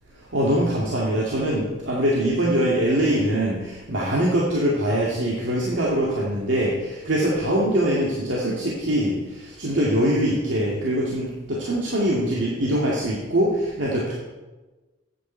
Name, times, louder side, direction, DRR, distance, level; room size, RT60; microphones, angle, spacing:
voice 1, 0.3-14.1, right 1 dB, 80° right, -5 dB, 2.2 m, -23 dB
14.0 x 9.3 x 4.5 m, 1.2 s
head